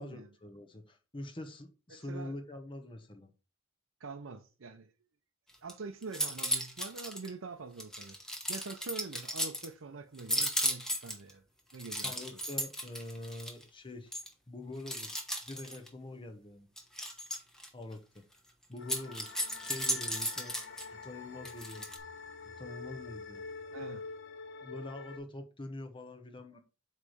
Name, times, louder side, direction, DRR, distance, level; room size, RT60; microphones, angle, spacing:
voice 1, 0.0-3.3 12.0-14.1 14.5-15.2 15.5-16.7 17.7-18.2 18.7-19.3 19.6-20.5 20.9-21.9 22.6-23.4 24.6-26.6, left 2 dB, 25° left, 1.1 m, -44 dB
voice 2, 1.9-2.3 4.0-4.9 5.6-8.2 8.5-11.4 11.7-12.4 23.7-24.0, right 4 dB, 90° right, 0.7 m, -45 dB
sound 1, 5.5-5.7 6.0-7.3 7.8-9.7 10.2-11.3 11.7-13.6 14.1-14.3 14.9-15.9 16.8-17.7 18.8-20.9 21.4-22.0, equal, 5° left, 1.2 m, -35 dB
sound 2, 18.8-25.2, left 4 dB, 65° left, 1.7 m, -46 dB
8.3 x 3.3 x 5.1 m
head